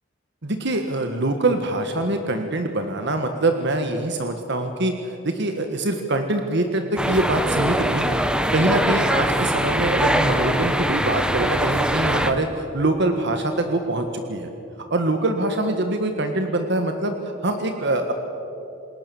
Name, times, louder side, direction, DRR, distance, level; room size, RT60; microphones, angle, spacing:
voice 1, 0.4-8.2 8.5-14.5 14.9-18.1, right 2 dB, 60° right, 6 dB, 1.6 m, -24 dB
sound 1, 7.0-12.3, equal, 5° right, 1.2 m, -22 dB
28.0 x 20.5 x 7.1 m, 2.8 s
head